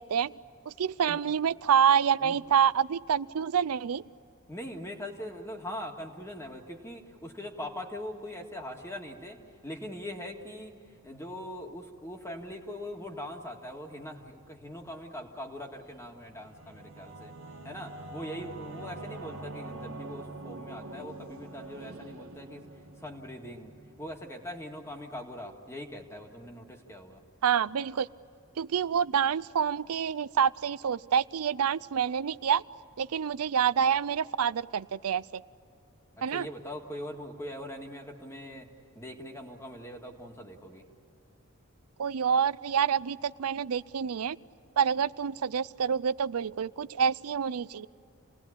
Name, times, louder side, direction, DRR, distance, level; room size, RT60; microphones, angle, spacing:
voice 1, 0.8-4.0 27.4-28.1 28.6-32.6 33.0-35.2 36.2-36.5 42.0-44.4 44.8-47.9, right 7 dB, 85° right, 19 dB, 0.5 m, -27 dB
voice 2, 4.5-17.3 17.6-22.7 23.0-27.2 36.3-38.7 39.0-40.9, left 1 dB, 15° left, 2 dB, 2.0 m, -41 dB
Singing / Musical instrument, 16.0-25.1, right 2 dB, 60° right, 1.9 m, -45 dB
28.0 x 19.0 x 8.7 m, 2.6 s
head